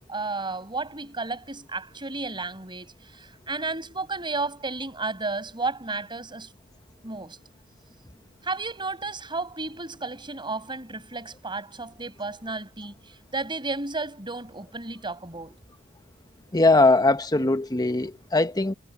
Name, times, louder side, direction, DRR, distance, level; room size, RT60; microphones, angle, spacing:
voice 1, 0.1-6.5 7.0-7.4 8.4-15.6, right 3 dB, 25° right, 5.7 m, -33 dB
voice 2, 16.5-18.7, left 2 dB, 20° left, 1.0 m, -20 dB
head